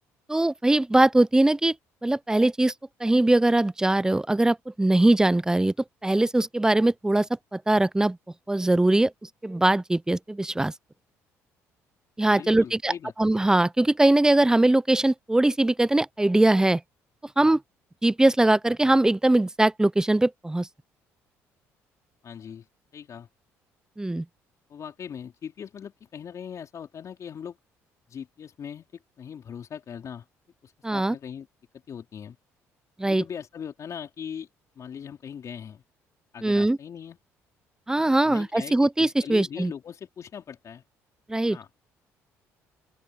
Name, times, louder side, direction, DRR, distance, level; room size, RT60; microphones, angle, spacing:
voice 1, 0.3-1.8 2.0-2.7 3.0-5.7 6.0-8.2 8.5-9.1 9.4-10.7 12.2-12.9 13.2-16.8 17.4-17.6 18.0-20.7 24.0-24.3 30.8-31.2 33.0-33.2 36.4-36.8 37.9-39.7 41.3-41.6, right 2 dB, 10° right, 0.5 m, -21 dB
voice 2, 12.4-13.1 22.2-22.7 22.9-23.3 24.7-27.6 28.1-30.3 30.6-31.5 31.9-32.4 33.0-34.5 34.8-35.8 36.3-37.2 38.1-40.8 41.5-41.7, left 8 dB, 50° left, 4.2 m, -40 dB
open air
supercardioid pair, 65°, 7 cm